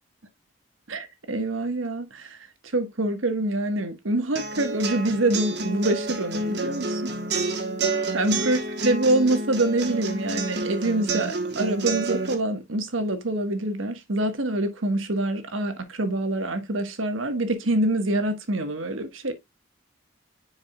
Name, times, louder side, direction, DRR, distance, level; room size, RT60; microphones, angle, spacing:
voice 1, 0.9-2.5 2.7-7.1 8.1-19.3, right 1 dB, 90° right, 1.4 m, -25 dB
sound 1, 4.4-12.3, right 3 dB, 55° right, 1.3 m, -29 dB
9.7 x 4.8 x 2.3 m
head